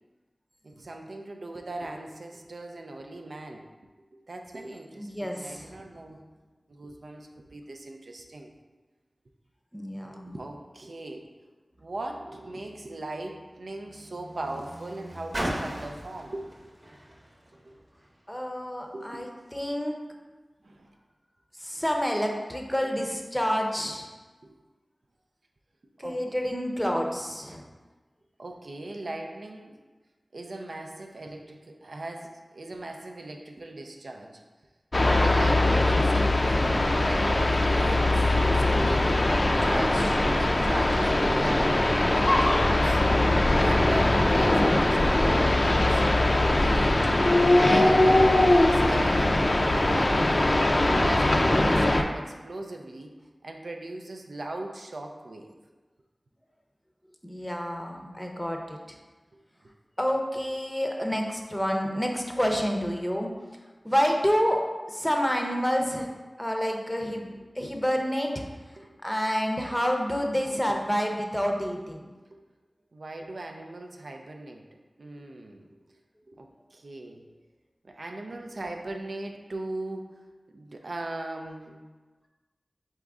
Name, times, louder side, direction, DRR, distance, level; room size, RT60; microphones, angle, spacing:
voice 1, 0.6-3.7 4.3-6.2 6.7-8.5 10.3-11.3 11.8-16.5 17.6-17.7 18.9-19.2 20.6-20.9 24.4-24.6 26.0-26.2 28.4-29.8 30.3-34.4 35.1-36.5 37.0-43.2 43.6-45.9 46.6-47.1 47.4-50.6 51.0-53.1 53.4-55.5 67.3-67.4 68.8-68.9 72.3-72.4 72.9-74.7 75.0-75.7 76.3-77.3 77.8-80.2 80.5-81.8, right 2 dB, 80° right, 3 dB, 0.4 m, -38 dB
voice 2, 4.9-5.7 9.7-10.4 18.3-20.0 21.6-24.1 26.0-27.6 57.2-58.8 60.0-63.3 63.8-64.6 64.9-66.1 66.4-68.3 69.0-72.1, equal, 10° left, 2 dB, 0.6 m, -28 dB
Car, 11.7-18.3 19.1-19.2, equal, 55° right, 1.0 m, -39 dB
sound 1, 34.9-52.0, left 1 dB, 50° left, 0.4 m, -21 dB
4.1 x 3.7 x 3.5 m, 1.3 s
wide cardioid pair, 50°, 0 cm